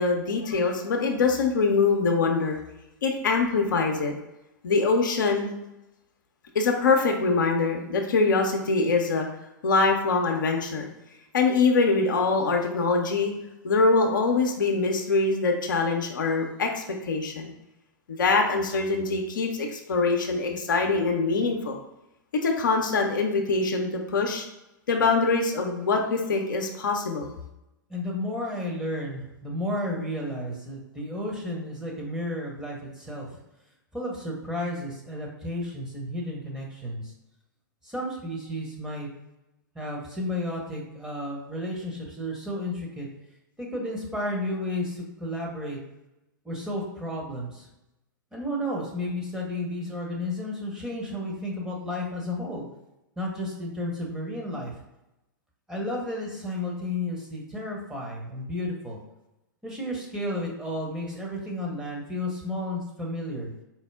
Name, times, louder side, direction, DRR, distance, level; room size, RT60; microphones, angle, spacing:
voice 1, 0.0-2.6 3.0-4.1 4.6-5.6 6.5-9.3 9.6-10.9 11.3-13.3 13.6-17.5 18.1-21.8 22.3-24.4 24.9-27.3, left 4 dB, 65° left, 2 dB, 0.6 m, -24 dB
voice 2, 27.9-33.4 33.9-37.1 37.8-39.1 39.7-43.1 43.6-45.8 46.4-47.7 48.3-52.7 53.2-54.8 55.7-59.0 59.6-63.5, left 1 dB, 5° right, -3 dB, 1.0 m, -32 dB
4.4 x 2.0 x 3.4 m, 0.92 s
figure-of-eight pair, 105°, 11 cm